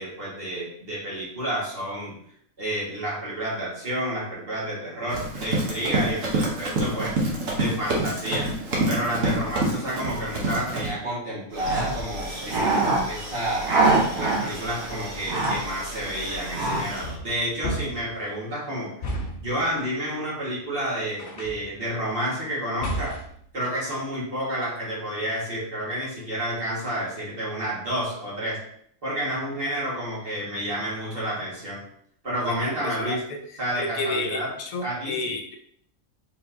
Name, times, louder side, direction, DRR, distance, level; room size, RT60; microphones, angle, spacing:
voice 1, 0.0-2.1 2.6-7.1 7.5-8.5 8.9-13.7 14.2-18.9 19.4-23.2 23.5-28.6 29.0-31.8 32.2-33.2 33.6-34.5 34.8-35.4, right 1 dB, 40° right, -7 dB, 1.9 m, -30 dB
Run, 5.1-10.9, right 2 dB, 65° right, 1.4 m, -26 dB
sound 1, 11.5-17.1, right 2 dB, 85° right, 1.7 m, -26 dB
sound 2, 17.0-18.2 19.0-19.6 21.2-21.7 22.8-23.4, equal, 55° left, 1.2 m, -32 dB
voice 2, 32.8-33.4 33.8-35.6, left 3 dB, 75° left, 4 dB, 1.0 m, -31 dB
4.5 x 3.9 x 2.7 m, 0.67 s
omnidirectional pair, 1.5 m